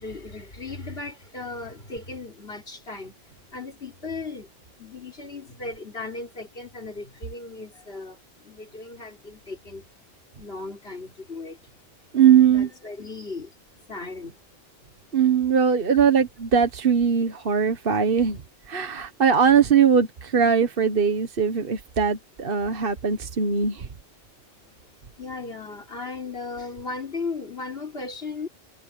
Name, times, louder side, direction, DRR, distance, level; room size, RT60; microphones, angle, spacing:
voice 1, 0.0-3.1 3.5-4.5 4.8-9.8 10.4-11.6 12.5-13.5 13.9-14.4 25.2-28.5, left 3 dB, 70° left, 4.2 m, -36 dB
voice 2, 12.1-12.7 15.1-18.4 18.7-23.9, right 7 dB, 65° right, 1.5 m, -20 dB
omnidirectional pair, 1.0 m